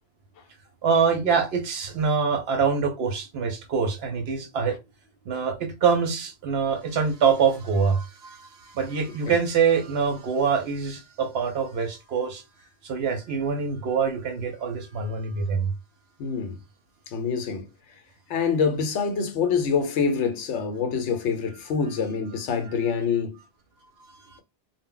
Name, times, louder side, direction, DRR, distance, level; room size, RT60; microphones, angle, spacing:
voice 1, 0.8-4.8 5.3-12.4 12.8-15.7 24.1-24.4, right 6 dB, 65° right, 0.7 m, -25 dB
voice 2, 16.2-16.6 17.1-17.7 18.3-23.4, left 6 dB, 70° left, 0.9 m, -26 dB
2.1 x 2.0 x 3.7 m
omnidirectional pair, 1.3 m